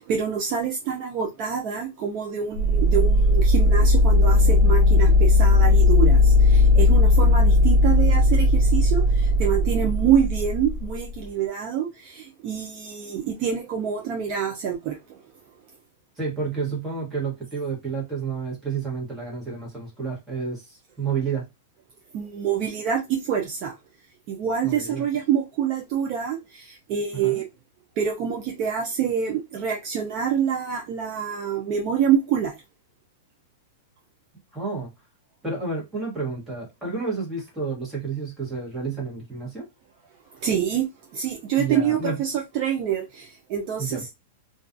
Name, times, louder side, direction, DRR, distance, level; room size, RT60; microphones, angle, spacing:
voice 1, 0.0-15.2 22.1-23.8 24.3-27.5 28.0-32.6 40.4-44.1, right 8 dB, 35° right, 0.4 m, -26 dB
sound 1, 2.6-11.3, left 2 dB, 75° right, 0.8 m, -17 dB
voice 2, 16.2-21.5 24.6-25.0 27.1-27.4 34.5-34.9 35.4-39.7 41.6-42.2 43.8-44.0, right 4 dB, 5° right, 1.1 m, -30 dB
2.3 x 2.3 x 2.5 m
supercardioid pair, 160°, 0 cm